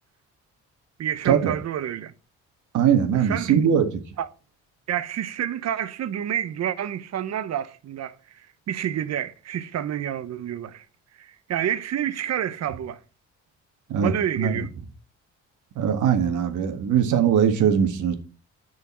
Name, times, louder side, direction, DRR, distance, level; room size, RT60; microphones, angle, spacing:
voice 1, 1.0-2.1 3.1-3.6 4.2-4.3 4.9-10.8 11.2-13.0 14.0-14.7, right 10 dB, 60° right, 0.9 m, -29 dB
voice 2, 2.7-3.8 13.9-14.5 15.7-18.2, right 8 dB, 75° right, 1.7 m, -21 dB
8.5 x 6.4 x 4.3 m
cardioid pair, 90°, 30 cm